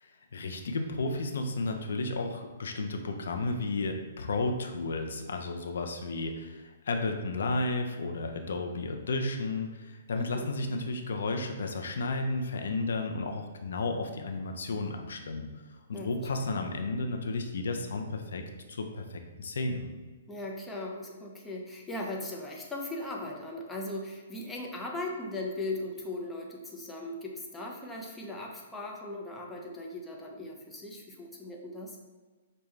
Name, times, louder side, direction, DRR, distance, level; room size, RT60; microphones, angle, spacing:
voice 1, 0.0-15.5 15.9-18.4 18.7-19.9, left 2 dB, 75° left, 4 dB, 0.5 m, -33 dB
voice 2, 10.1-10.5 15.9-16.5 20.3-32.0, left 2 dB, 10° left, -1 dB, 0.6 m, -38 dB
5.2 x 2.2 x 3.1 m, 1.3 s
hypercardioid pair, 150°, 0 cm